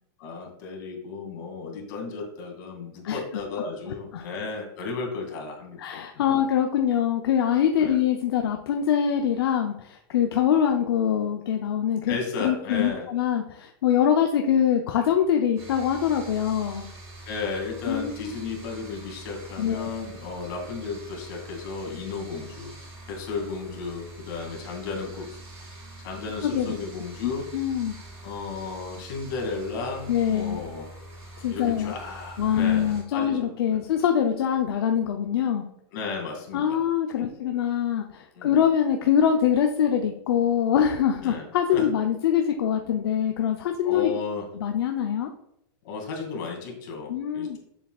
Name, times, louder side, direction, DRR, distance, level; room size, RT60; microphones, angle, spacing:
voice 1, 0.2-5.8 6.1-6.2 7.8-8.0 12.1-13.0 17.3-22.7 23.1-25.4 26.0-27.4 28.2-30.9 31.5-33.8 35.9-36.8 37.2-37.3 38.3-38.6 41.2-41.9 43.8-44.5 45.8-47.6, left 4 dB, 55° left, 1 dB, 2.4 m, -34 dB
voice 2, 3.0-3.4 3.9-4.2 5.8-16.9 17.9-18.3 19.6-19.9 26.4-26.8 27.2-28.0 30.1-30.6 31.4-31.9 32.4-35.7 36.5-44.1 44.5-45.3 47.1-47.6, left 9 dB, 75° left, 3 dB, 0.7 m, -24 dB
sound 1, 15.6-33.0, right 2 dB, 25° right, 1.9 m, -44 dB
7.1 x 7.0 x 2.4 m, 0.76 s
supercardioid pair, 155°, 13 cm